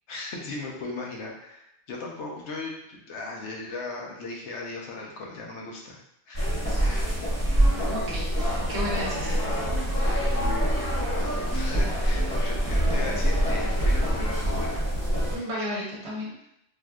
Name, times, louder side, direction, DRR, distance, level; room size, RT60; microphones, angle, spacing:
voice 1, 0.1-6.0 6.3-6.5 6.9-7.1 10.3-10.7 11.2-14.8, left 2 dB, 70° left, -2 dB, 0.9 m, -37 dB
sound 1, 6.3-15.4, equal, 10° left, 1.0 m, -25 dB
voice 2, 7.9-9.3 15.3-16.4, left 1 dB, 65° right, -4 dB, 1.1 m, -33 dB
3.5 x 2.5 x 2.3 m, 0.80 s
omnidirectional pair, 1.3 m